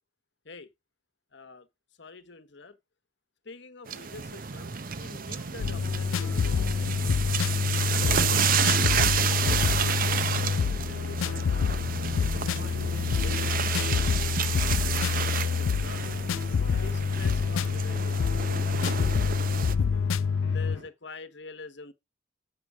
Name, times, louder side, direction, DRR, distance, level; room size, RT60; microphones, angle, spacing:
voice 1, 1.3-1.7 2.0-2.8 3.4-6.9 8.0-11.6 12.1-16.2 16.8-19.4 20.4-21.9, left 3 dB, 60° left, 1.3 m, -46 dB
sound 1, 3.9-19.7, right 8 dB, 45° right, 0.7 m, -31 dB
sound 2, 5.5-20.9, right 2 dB, 60° right, 2.6 m, -50 dB
sound 3, 5.6-20.8, left 6 dB, 90° left, 0.4 m, -27 dB
7.7 x 6.9 x 4.8 m
head